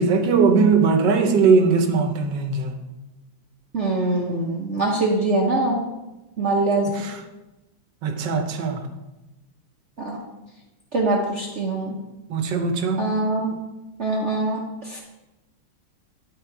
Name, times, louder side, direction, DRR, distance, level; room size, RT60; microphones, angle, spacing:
voice 1, 0.0-2.7 7.0-7.1 8.0-8.8 12.3-13.0, right 4 dB, 65° right, 5 dB, 1.5 m, -19 dB
voice 2, 3.7-5.8 6.4-7.1 10.0-10.2 10.9-12.0 13.0-13.5 14.0-15.0, right 2 dB, 45° right, -2 dB, 1.0 m, -23 dB
11.0 x 4.3 x 4.7 m, 1.0 s
omnidirectional pair, 2.2 m